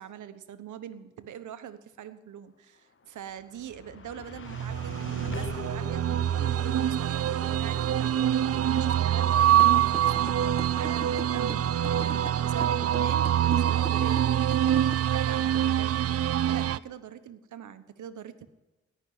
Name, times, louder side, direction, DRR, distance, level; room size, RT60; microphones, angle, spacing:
voice 1, 0.0-16.0 16.5-18.5, right 9 dB, 80° right, 11 dB, 1.1 m, -43 dB
sound 1, 2.8-15.1, left 6 dB, 45° left, 1.1 m, -46 dB
sound 2, 4.5-16.8, right 10 dB, 55° right, 0.5 m, -25 dB
sound 3, 9.6-14.9, right 2 dB, 10° right, 1.6 m, -41 dB
17.5 x 6.2 x 9.3 m, 1.1 s
cardioid pair, 60°, 30 cm